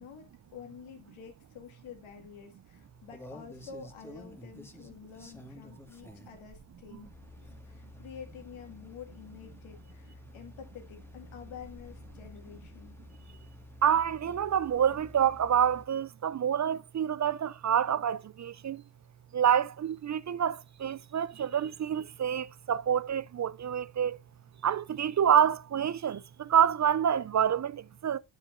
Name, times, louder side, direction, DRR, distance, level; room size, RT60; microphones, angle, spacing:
voice 1, 0.0-7.1 7.7-13.0, left 7 dB, 90° left, 2.0 m, -49 dB
sound 1, 2.7-15.9, left 2 dB, 5° left, 1.7 m, -51 dB
voice 2, 13.8-18.8 19.3-24.2 24.6-28.2, right 9 dB, 40° right, 0.4 m, -27 dB
9.8 x 7.9 x 2.5 m
supercardioid pair, 50°, 47 cm